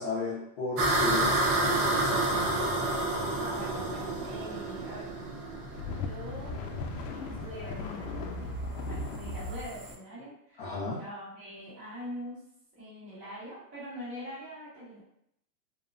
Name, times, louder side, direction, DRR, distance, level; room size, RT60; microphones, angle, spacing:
voice 1, 0.0-1.3 1.6-2.5 10.6-11.0, left 4 dB, 35° left, -9 dB, 0.5 m, -34 dB
sound 1, 0.8-9.9, right 2 dB, 65° right, 0.8 m, -30 dB
voice 2, 3.4-5.1 6.0-6.6 7.1-8.5 8.9-12.4 12.8-15.0, equal, 15° right, -10 dB, 0.6 m, -43 dB
sound 2, 5.4-9.7, left 2 dB, 85° left, 0.6 m, -37 dB
2.7 x 2.0 x 2.5 m, 0.75 s
supercardioid pair, 175°, 49 cm